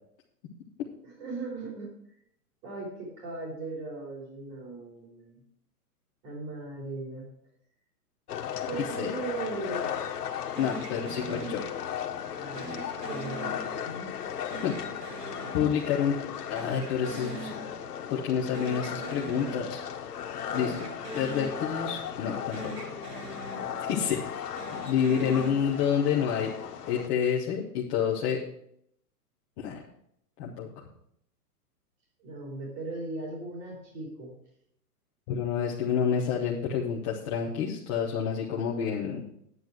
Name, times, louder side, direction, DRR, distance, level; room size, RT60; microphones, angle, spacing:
voice 1, 1.0-1.9 2.6-5.4 6.2-7.3 8.7-9.9 12.4-14.1 32.2-34.4, right 3 dB, 35° right, -3 dB, 3.8 m, -38 dB
sound 1, 8.3-27.1, left 9 dB, 70° left, 1.4 m, -37 dB
voice 2, 10.6-11.6 14.6-14.8 15.5-16.2 16.5-17.5 18.1-19.8 20.5-20.9 21.1-22.9 23.9-24.2 24.8-26.5 26.9-28.4 29.6-29.8 30.4-30.7 35.3-39.2, left 7 dB, 15° left, -5 dB, 0.6 m, -28 dB
sound 2, 10.6-12.1 12.5-14.1 14.5-16.3 16.5-18.1 18.4-20.1 20.5-22.3 22.5-24.1 24.5-26.2, right 3 dB, 90° right, 2.6 m, -43 dB
9.7 x 9.3 x 4.6 m, 0.71 s
hypercardioid pair, 160°, 47 cm